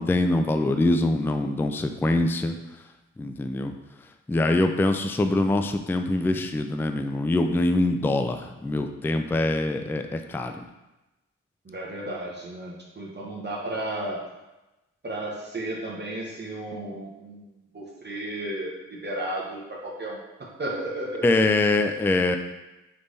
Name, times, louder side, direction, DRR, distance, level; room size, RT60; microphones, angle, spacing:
voice 1, 0.0-2.6 3.2-3.7 4.3-10.7 21.2-22.4, left 2 dB, 5° left, 7 dB, 0.3 m, -24 dB
voice 2, 11.6-14.2 15.0-17.4 17.7-21.2, right 1 dB, 35° right, -4 dB, 1.1 m, -33 dB
3.4 x 3.3 x 4.0 m, 1.0 s
supercardioid pair, 50°, 32 cm